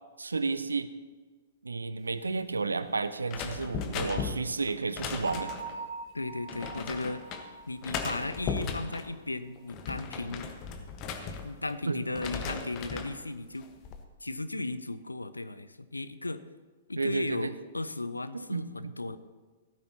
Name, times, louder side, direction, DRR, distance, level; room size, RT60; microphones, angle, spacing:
voice 1, 0.2-0.9 1.6-5.5 11.9-12.0 17.0-17.5 18.3-18.9, right 4 dB, 75° right, 13 dB, 0.6 m, -32 dB
sound 1, 3.3-5.8 6.5-7.4 7.8-9.1 9.6-11.8 12.1-13.2 13.6-14.0, left 5 dB, 30° left, 1.2 m, -37 dB
Bell, 5.2-8.9, right 4 dB, 50° right, 1.1 m, -43 dB
voice 2, 6.1-7.2 7.7-10.5 11.4-13.7 14.2-16.4 16.9-19.2, left 2 dB, 80° left, 13 dB, 0.6 m, -36 dB
16.0 x 13.5 x 2.9 m, 1.4 s
figure-of-eight pair, 110°, 0 cm